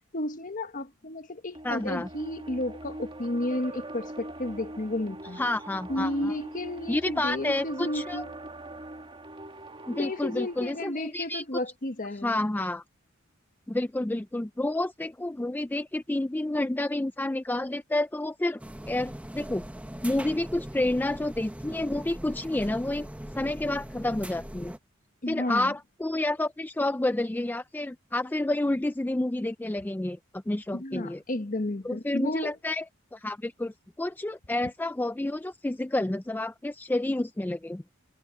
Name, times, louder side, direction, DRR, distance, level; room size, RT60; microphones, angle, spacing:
voice 1, 0.1-5.4 5.9-8.3 9.9-12.5 25.2-25.7 30.7-32.6, left 1 dB, 40° left, 1.3 m, -32 dB
sound 1, 1.5-10.9, right 1 dB, 25° right, 2.4 m, -42 dB
voice 2, 1.6-2.1 5.4-6.3 6.9-8.2 9.9-11.4 12.2-12.8 13.7-18.6 18.9-19.6 20.0-23.1 23.3-24.7 25.3-31.2 31.8-32.8 33.1-37.8, left 1 dB, 10° left, 0.4 m, -29 dB
sound 2, 18.6-24.8, right 1 dB, 5° right, 0.8 m, -41 dB
head